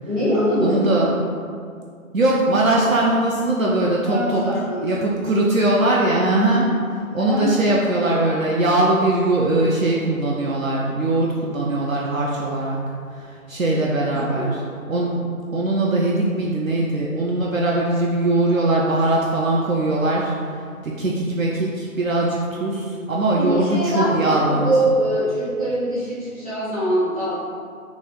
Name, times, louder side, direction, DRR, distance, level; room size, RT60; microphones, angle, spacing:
voice 1, 0.1-0.8 4.0-4.9 7.1-7.5 7.9-8.1 13.7-13.8 14.1-14.5 23.4-27.4, equal, 25° right, -14 dB, 1.2 m, -23 dB
voice 2, 0.6-1.1 2.1-4.4 4.8-6.7 7.1-12.8 13.1-14.6 14.9-15.3 15.5-20.3 20.8-24.7, right 2 dB, 70° right, -3 dB, 0.5 m, -21 dB
3.0 x 2.6 x 3.9 m, 2.2 s
figure-of-eight pair, 170°, 43 cm